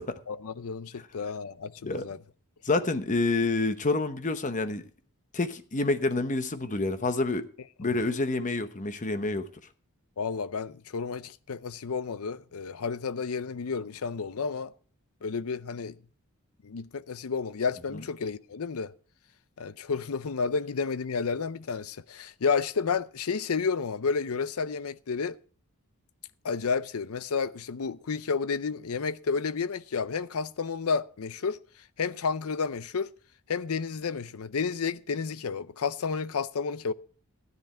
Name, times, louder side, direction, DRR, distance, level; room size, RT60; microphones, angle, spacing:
voice 1, 0.3-2.2 10.2-14.7 15.2-16.0 16.6-18.9 19.6-25.4 26.4-31.6 32.0-33.1 33.5-36.9, left 5 dB, 80° left, 0.6 m, -31 dB
voice 2, 2.6-4.8 5.3-7.4 7.8-9.4, left 2 dB, 35° left, 0.9 m, -28 dB
13.5 x 9.9 x 4.4 m
head